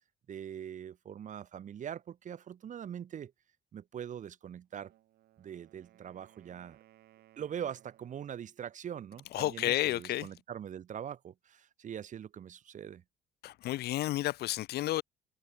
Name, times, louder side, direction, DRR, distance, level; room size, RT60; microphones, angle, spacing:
voice 1, 0.3-3.3 3.7-4.9 5.4-6.8 7.4-13.0, right 9 dB, 50° right, 2.5 m, -42 dB
Wind instrument woodwind instrument, 4.7-8.5, right 14 dB, 70° right, 5.0 m, -63 dB
voice 2, 9.3-10.3 13.4-15.0, left 15 dB, 70° left, 1.4 m, -31 dB
open air
cardioid pair, 110°, 17 cm